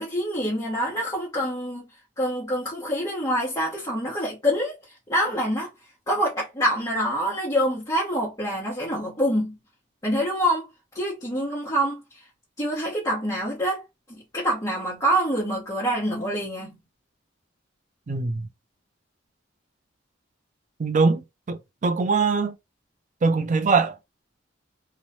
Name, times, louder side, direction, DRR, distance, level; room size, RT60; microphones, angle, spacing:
voice 1, 0.0-1.8 2.2-4.8 5.1-5.7 6.1-9.6 10.0-10.7 10.9-12.0 12.6-13.8 14.3-16.7, equal, 20° left, 1.0 m, -26 dB
voice 2, 18.1-18.5 20.8-22.5 23.2-24.0, right 4 dB, 40° right, 0.4 m, -22 dB
3.0 x 2.1 x 2.6 m
head